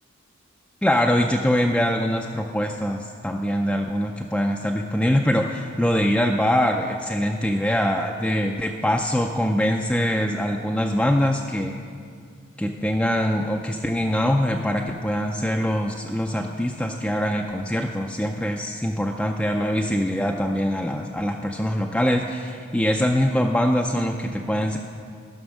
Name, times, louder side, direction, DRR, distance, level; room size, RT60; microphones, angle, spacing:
voice 1, 0.8-11.7 12.6-24.8, equal, 5° left, 1 dB, 0.4 m, -23 dB
15.0 x 6.1 x 6.3 m, 2.2 s
head